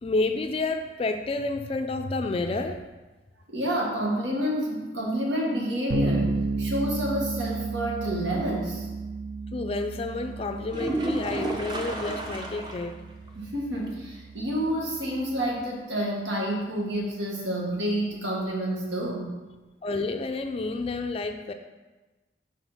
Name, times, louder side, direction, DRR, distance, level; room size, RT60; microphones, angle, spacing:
voice 1, 0.0-2.8 9.5-13.0 19.8-21.5, left 3 dB, 30° left, 0.3 m, -30 dB
voice 2, 3.5-8.9 13.4-19.4, equal, 85° right, 1.4 m, -29 dB
Bass guitar, 5.9-15.5, right 3 dB, 65° right, 0.7 m, -33 dB
sound 1, 10.7-12.9 13.3-13.4 13.8-13.9 17.7-17.8, right 1 dB, 25° right, 0.6 m, -31 dB
6.1 x 4.2 x 5.6 m
head